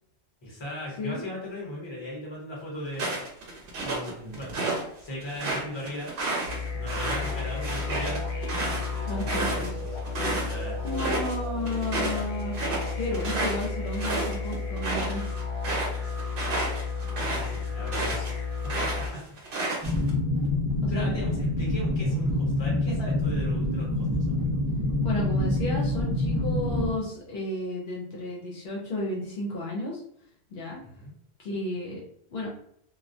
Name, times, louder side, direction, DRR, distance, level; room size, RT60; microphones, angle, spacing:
voice 1, 0.4-3.1 3.8-4.6 5.0-6.1 6.7-8.3 8.7-10.8 17.2-18.4 18.8-19.2 20.9-24.5 30.8-31.1, left 1 dB, 25° left, -4 dB, 0.9 m, -38 dB
sound 1, 2.9-4.8 5.2-10.5 10.9-11.4 11.7-18.3 18.6-20.1, right 2 dB, 60° right, 0.8 m, -31 dB
sound 2, 6.4-19.1, left 4 dB, 45° left, 0.4 m, -32 dB
voice 2, 9.1-9.7 10.8-12.6 13.0-15.2 20.8-21.1 25.0-30.0 30.5-30.8 31.4-32.0 32.3-32.5, left 1 dB, 70° left, -3 dB, 0.8 m, -33 dB
sound 3, 19.8-26.9, left 1 dB, 30° right, 0.4 m, -26 dB
2.3 x 2.1 x 2.6 m, 0.67 s
omnidirectional pair, 1.1 m